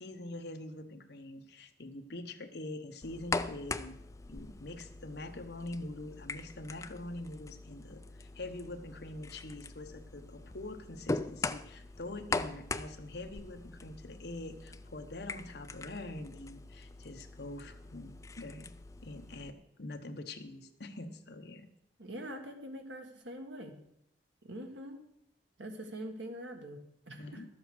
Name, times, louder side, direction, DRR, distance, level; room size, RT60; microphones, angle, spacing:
voice 1, 0.0-4.0 4.3-18.7 19.0-21.7 27.2-27.5, left 2 dB, 65° left, 6 dB, 1.1 m, -44 dB
sound 1, 3.0-19.5, left 3 dB, 15° left, 0.3 m, -42 dB
voice 2, 22.0-23.7 24.4-25.0 25.6-26.8 27.1-27.4, right 1 dB, 80° right, 4 dB, 1.7 m, -43 dB
12.0 x 7.9 x 6.2 m, 0.76 s
head